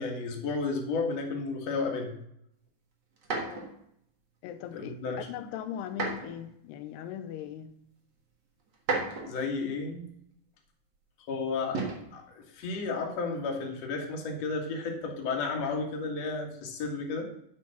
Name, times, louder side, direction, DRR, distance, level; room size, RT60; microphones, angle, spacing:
voice 1, 0.0-2.1 4.7-5.2 9.2-10.1 11.3-11.8 12.1-17.2, left 4 dB, 50° left, 1 dB, 2.4 m, -32 dB
sound 1, 3.2-3.7 5.9-6.4 7.4-7.5 8.7-9.5 11.7-12.1 13.3-13.7, right 3 dB, 60° right, 1.1 m, -33 dB
voice 2, 3.3-3.7 4.4-7.7, left 10 dB, 85° left, 9 dB, 2.7 m, -39 dB
9.7 x 6.3 x 5.8 m, 0.74 s
omnidirectional pair, 4.7 m